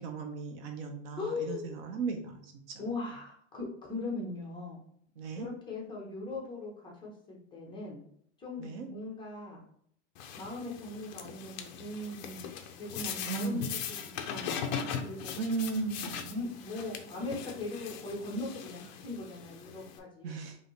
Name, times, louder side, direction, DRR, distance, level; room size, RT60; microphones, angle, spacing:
voice 1, 0.0-2.8 5.2-5.5 8.6-8.9 13.3-13.8 15.4-16.4 20.2-20.6, right 4 dB, 50° right, 5 dB, 0.8 m, -36 dB
voice 2, 1.2-1.7 2.8-4.8 5.4-8.0 8.4-9.7 10.3-12.5 12.8-13.7 14.3-15.3 16.3-20.4, left 2 dB, 10° left, -3 dB, 0.9 m, -39 dB
sound 1, 10.1-20.0, left 7 dB, 35° left, 0.5 m, -40 dB
5.0 x 2.8 x 3.2 m, 0.66 s
supercardioid pair, 155°, 39 cm